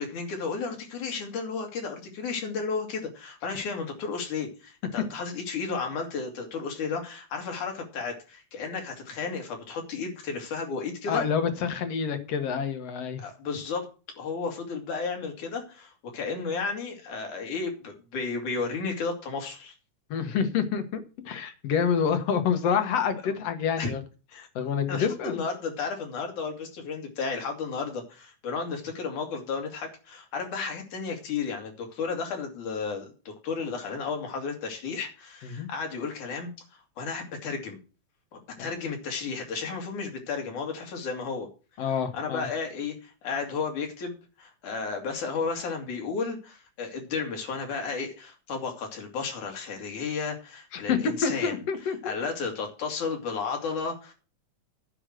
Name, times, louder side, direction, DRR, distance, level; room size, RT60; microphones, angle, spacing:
voice 1, 0.0-11.2 13.2-13.9 14.2-19.7 23.8-23.9 24.9-37.8 38.3-41.5 42.1-51.6 52.0-54.1, left 5 dB, 85° left, 2 dB, 3.8 m, -33 dB
voice 2, 11.1-13.2 20.1-24.0 24.4-25.4 35.4-35.7 38.6-38.7 41.8-42.5 50.7-52.2, left 7 dB, 60° left, 8 dB, 2.2 m, -28 dB
10.0 x 5.7 x 7.7 m, 0.35 s
omnidirectional pair, 3.4 m